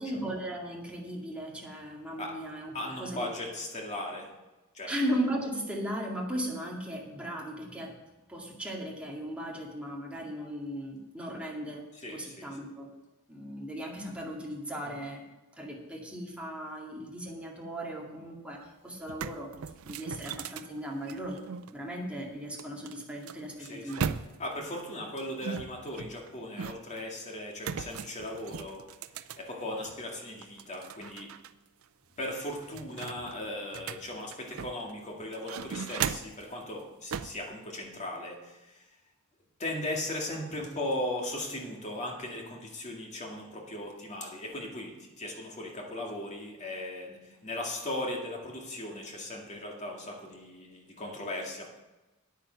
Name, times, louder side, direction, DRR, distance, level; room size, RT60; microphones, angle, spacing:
voice 1, 0.0-3.3 4.9-8.0 8.3-11.8 12.1-12.9 13.3-15.2 15.6-19.5 19.8-21.4 21.7-24.1, equal, 5° right, -2 dB, 2.1 m, -37 dB
voice 2, 2.7-4.3 4.7-4.9 11.9-12.5 23.6-23.9 24.4-28.8 29.4-31.3 32.2-38.8 39.6-51.8, left 1 dB, 35° left, 0 dB, 2.2 m, -37 dB
sound 1, 18.5-18.6 19.0-21.7 22.6-24.6 25.4-27.0 27.6-30.0 30.4-31.5 31.8-31.9 32.3-34.9 35.3-36.5 37.1-37.4, right 7 dB, 75° right, 0.5 m, -38 dB
9.3 x 9.1 x 5.8 m, 1.1 s
head